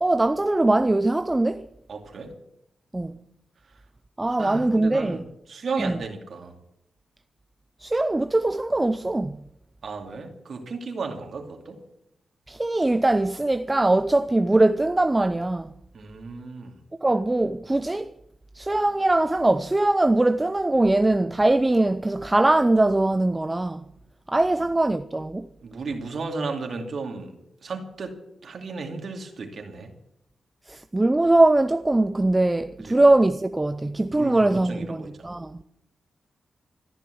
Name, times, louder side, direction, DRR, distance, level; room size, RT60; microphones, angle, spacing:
voice 1, 0.0-1.7 2.9-3.2 4.2-5.2 5.8-6.0 7.8-9.4 12.5-15.7 17.0-18.1 18.5-23.9 24.3-25.5 30.7-35.6, right 2 dB, 15° right, 0.5 m, -21 dB
voice 2, 1.9-2.4 4.2-5.2 5.5-6.5 9.8-11.8 15.9-16.8 25.6-27.3 27.6-29.9 32.8-33.0 34.1-35.1, right 4 dB, 60° right, 2.4 m, -34 dB
14.5 x 10.5 x 7.9 m
cardioid pair, 100°, 0 cm